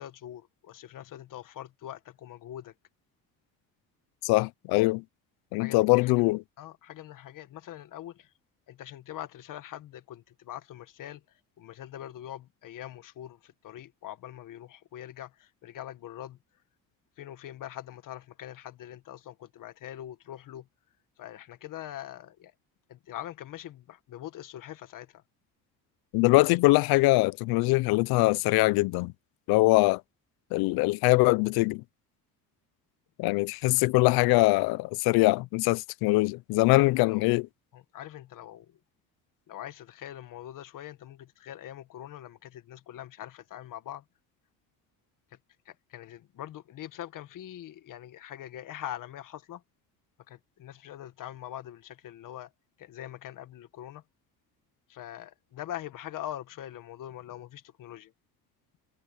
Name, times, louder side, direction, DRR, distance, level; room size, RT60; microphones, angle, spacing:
voice 1, 0.0-2.7 5.6-8.3 8.7-11.2 11.6-16.4 17.2-20.7 21.2-22.5 22.9-25.2 36.7-37.4 37.7-38.8 39.5-44.0 45.6-49.6 50.3-52.5 52.8-54.0 54.9-58.1, left 12 dB, 60° left, 1.7 m, -43 dB
voice 2, 4.2-5.0 5.5-6.4 26.1-29.1 29.5-30.0 30.5-31.8 33.2-37.5, left 22 dB, 90° left, 0.6 m, -23 dB
cardioid pair, 125°, 36 cm